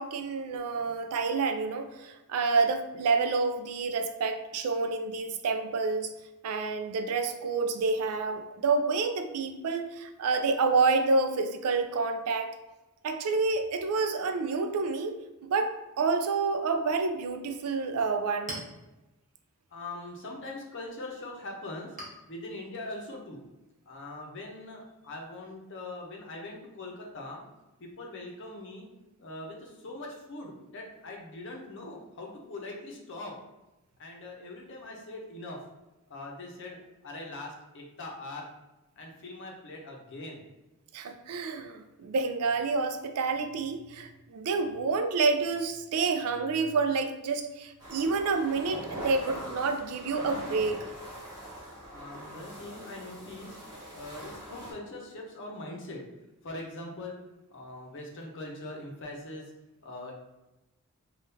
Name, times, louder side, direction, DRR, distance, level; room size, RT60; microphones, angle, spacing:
voice 1, 0.0-6.1 6.4-12.5 13.0-18.6 40.9-50.9, right 4 dB, 80° right, 7 dB, 0.4 m, -28 dB
Chink clink, 17.9-25.0, right 1 dB, 35° right, 0.8 m, -49 dB
voice 2, 19.7-21.9 22.3-23.4 23.9-27.4 27.8-28.8 29.2-33.3 34.0-35.6 36.1-36.8 37.0-38.5 39.0-40.4 51.9-53.6 53.9-56.0 56.4-57.2 57.5-59.4 59.8-60.1, left 2 dB, 55° left, 0 dB, 0.7 m, -42 dB
sound 1, 47.8-54.7, right 1 dB, 20° right, 1.3 m, -42 dB
3.6 x 2.3 x 2.7 m, 1.0 s
head